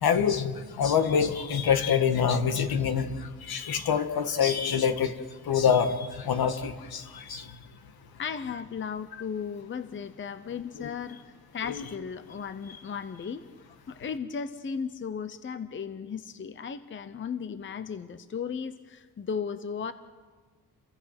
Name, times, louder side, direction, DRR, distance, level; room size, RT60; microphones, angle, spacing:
voice 1, 0.0-5.1 5.5-7.4 10.8-10.9 11.6-11.8, left 7 dB, 70° left, 7 dB, 2.0 m, -26 dB
voice 2, 8.2-11.2 11.5-13.4 13.9-19.9, left 6 dB, 30° left, 11 dB, 0.8 m, -35 dB
30.0 x 23.5 x 6.0 m, 1.5 s
cardioid pair, 140°, 38 cm